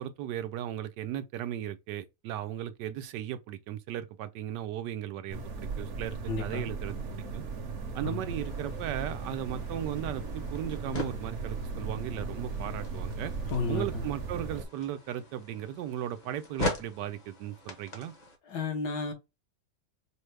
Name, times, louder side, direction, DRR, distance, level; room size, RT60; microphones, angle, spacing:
voice 1, 0.0-7.4 7.9-13.3 13.7-18.1, right 11 dB, 85° right, 1.2 m, -36 dB
sound 1, 5.3-14.7, right 4 dB, 55° right, 0.9 m, -37 dB
voice 2, 6.3-6.7 8.0-8.2 13.5-14.1 18.4-19.1, left 4 dB, 70° left, 1.5 m, -32 dB
sound 2, 8.3-18.4, left 1 dB, 35° left, 0.8 m, -41 dB
5.1 x 2.1 x 3.2 m
omnidirectional pair, 1.8 m